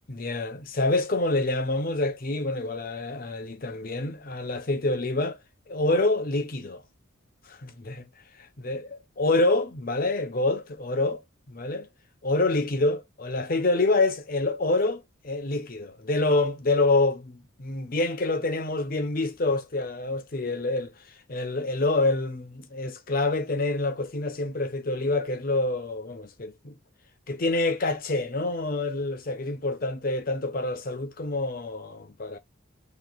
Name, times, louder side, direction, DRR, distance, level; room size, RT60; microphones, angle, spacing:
voice 1, 0.1-5.4 5.7-6.8 7.5-8.1 8.6-8.8 9.2-11.2 11.5-11.9 12.2-20.9 21.3-26.7 27.3-32.4, left 2 dB, 45° left, 0.7 m, -27 dB
3.0 x 2.8 x 4.0 m
head